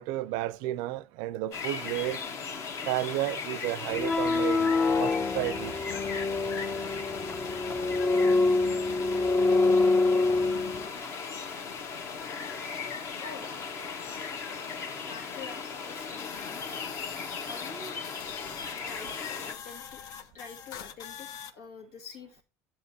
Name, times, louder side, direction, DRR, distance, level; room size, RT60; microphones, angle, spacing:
voice 1, 0.0-2.2 2.9-5.8, right 15 dB, 75° right, 0.5 m, -32 dB
sound 1, 1.5-19.5, left 5 dB, 45° left, 1.1 m, -38 dB
sound 2, 3.9-10.9, left 3 dB, 20° left, 0.6 m, -26 dB
voice 2, 6.8-7.3 12.1-12.2 13.2-13.6 15.1-16.6 17.4-18.0 18.8-20.0 20.3-22.4, left 4 dB, 90° left, 2.4 m, -46 dB
sound 3, 16.2-21.5, left 8 dB, 60° left, 0.8 m, -44 dB
10.5 x 7.2 x 2.7 m
cardioid pair, 130°, 7 cm